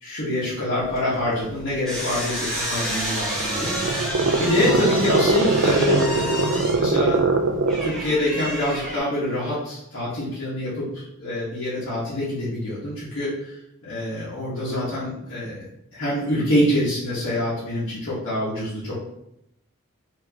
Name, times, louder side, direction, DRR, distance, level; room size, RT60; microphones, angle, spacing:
voice 1, 0.0-4.1 4.4-7.2 7.8-13.5 13.8-15.6 15.9-18.9, left 1 dB, 70° left, -10 dB, 1.2 m, -26 dB
sound 1, 0.8-9.0, equal, 5° left, 0.9 m, -30 dB
sound 2, 3.1-8.0, right 3 dB, 65° right, 0.4 m, -22 dB
4.7 x 2.9 x 2.8 m, 0.80 s
head